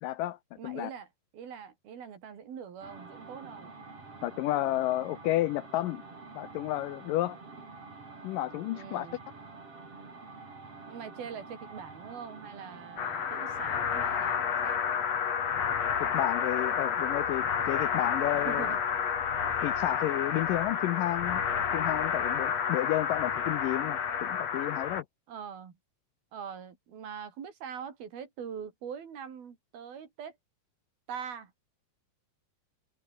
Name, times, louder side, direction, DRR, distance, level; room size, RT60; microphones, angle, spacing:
voice 1, 0.0-0.4 0.6-0.9 4.2-6.0 6.3-7.4 8.2-9.1 16.0-18.7 19.6-21.4 21.7-25.1, left 15 dB, 80° left, 2.1 m, -31 dB
voice 2, 0.6-1.1 1.3-3.7 8.7-9.2 10.9-14.8 18.4-18.8 25.3-25.7 26.3-30.4 31.1-31.5, right 7 dB, 75° right, 5.2 m, -43 dB
sound 1, 2.8-14.3, right 3 dB, 35° right, 6.5 m, -48 dB
sound 2, 13.0-25.0, left 7 dB, 45° left, 3.3 m, -30 dB
sound 3, 15.8-22.7, left 2 dB, 15° left, 6.2 m, -52 dB
omnidirectional pair, 4.4 m